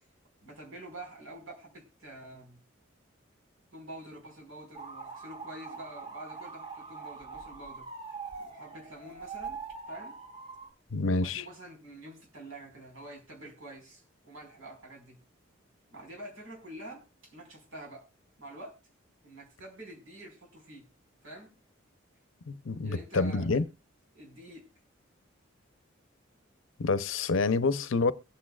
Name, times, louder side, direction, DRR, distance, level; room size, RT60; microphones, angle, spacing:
voice 1, 0.4-2.6 3.7-7.9 8.4-9.6 9.9-10.2 11.2-15.2 15.9-18.1 18.4-18.7 19.2-20.9 21.2-21.5 22.8-23.6 24.1-24.7, right 1 dB, 90° right, 5.0 m, -47 dB
sound 1, 4.8-10.7, right 5 dB, 25° right, 2.3 m, -43 dB
voice 2, 10.9-11.4 22.5-23.6 26.8-28.1, left 3 dB, 80° left, 0.7 m, -27 dB
22.5 x 8.6 x 2.4 m
head